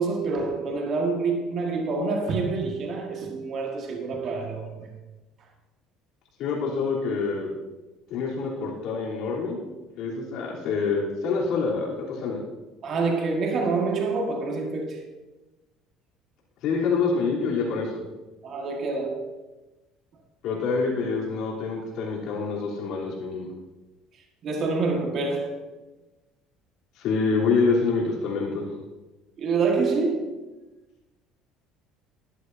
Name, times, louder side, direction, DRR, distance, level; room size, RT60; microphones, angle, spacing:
voice 1, 0.0-4.9 12.8-15.1 18.4-19.3 24.4-25.7 29.4-30.4, right 4 dB, 50° right, 1.7 m, -27 dB
voice 2, 6.4-7.5 8.1-9.6 10.0-12.4 16.6-18.0 20.4-23.5 27.0-28.7, left 4 dB, 65° left, 3.3 m, -26 dB
13.5 x 11.0 x 2.7 m
supercardioid pair, 95°, 0 cm